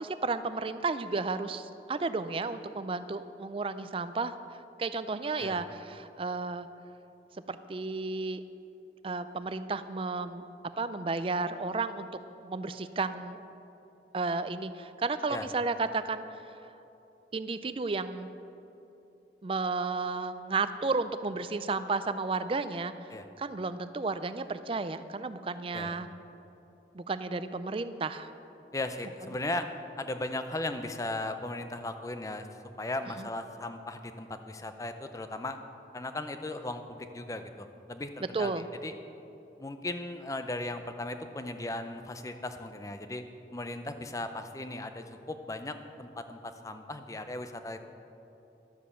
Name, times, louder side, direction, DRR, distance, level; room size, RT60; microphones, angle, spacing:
voice 1, 0.0-6.7 7.3-8.4 9.0-10.4 10.8-12.1 12.4-13.4 14.1-16.4 17.3-18.3 19.4-22.9 23.4-26.1 26.9-28.3 33.2-33.3 38.3-38.7, right 3 dB, 30° right, 12 dB, 0.4 m, -33 dB
voice 2, 28.7-29.6 30.0-32.5 32.8-35.6 35.9-38.5 38.8-38.9 39.6-43.2 43.5-47.8, left 2 dB, 20° left, 8 dB, 0.5 m, -37 dB
12.0 x 7.5 x 6.8 m, 3.0 s
head